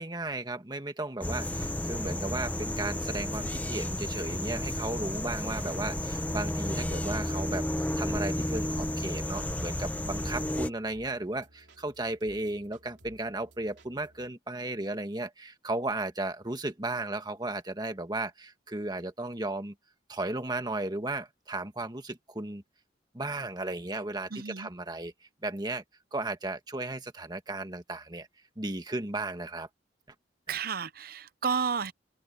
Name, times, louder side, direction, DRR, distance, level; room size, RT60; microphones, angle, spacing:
voice 1, 0.0-7.7 8.0-19.7 20.1-22.6 23.1-25.1 25.4-25.8 26.1-28.3 28.6-29.7 30.5-30.6, right 2 dB, 25° right, 1.7 m, -35 dB
sound 1, 1.2-10.7, left 1 dB, 10° left, 1.1 m, -32 dB
sound 2, 5.9-14.3, right 1 dB, 80° right, 3.3 m, -58 dB
voice 2, 24.3-24.7 30.5-31.9, right 6 dB, 55° right, 0.7 m, -31 dB
head